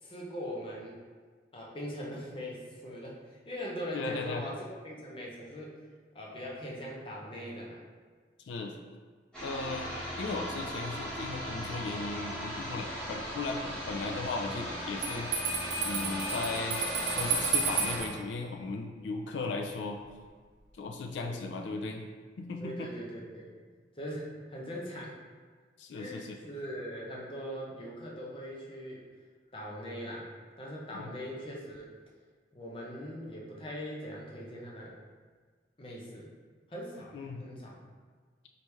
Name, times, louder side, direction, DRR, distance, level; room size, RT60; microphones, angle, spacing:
voice 1, 0.0-1.0 1.5-5.8 6.1-7.8 21.2-21.4 22.6-23.5 24.0-25.1 25.9-29.0 29.5-30.3 30.6-31.9 32.5-35.0 35.8-36.3 36.7-37.8, equal, 30° left, -4 dB, 0.7 m, -41 dB
voice 2, 3.9-4.4 8.5-8.7 9.4-15.3 15.8-16.8 17.1-20.0 20.8-22.0 22.4-22.9 25.8-26.4 30.9-31.1 37.1-37.4, left 3 dB, 85° left, 3 dB, 0.3 m, -37 dB
sound 1, 9.3-18.0, equal, 5° left, 1.3 m, -37 dB
Bell, 15.0-18.1, right 5 dB, 80° right, 0.9 m, -32 dB
4.1 x 3.2 x 3.4 m, 1.5 s
head